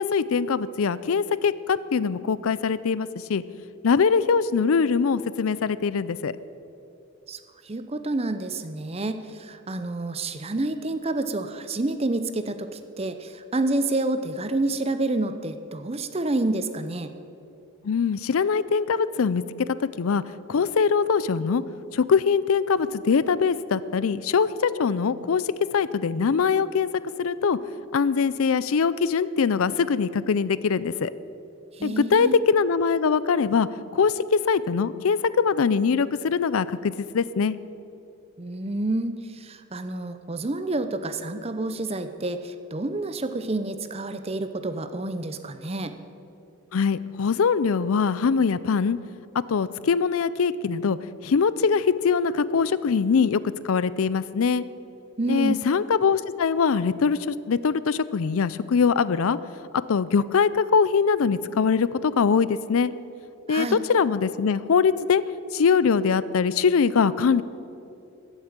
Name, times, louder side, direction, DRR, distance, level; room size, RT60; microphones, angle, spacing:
voice 1, 0.0-3.4 3.8-6.3 17.8-20.2 20.5-21.6 21.9-25.5 25.7-26.9 27.2-27.6 27.9-31.1 31.8-33.7 33.9-37.6 46.7-49.0 49.5-51.0 51.2-53.4 53.6-54.6 55.3-59.4 59.9-62.9 63.5-65.2 65.5-67.4, left 5 dB, 70° left, 17 dB, 0.4 m, -22 dB
voice 2, 7.6-17.1 31.8-32.4 38.4-45.9 55.2-55.6 63.5-63.8, right 2 dB, 25° right, 9 dB, 0.6 m, -28 dB
14.5 x 8.1 x 8.9 m, 2.7 s
head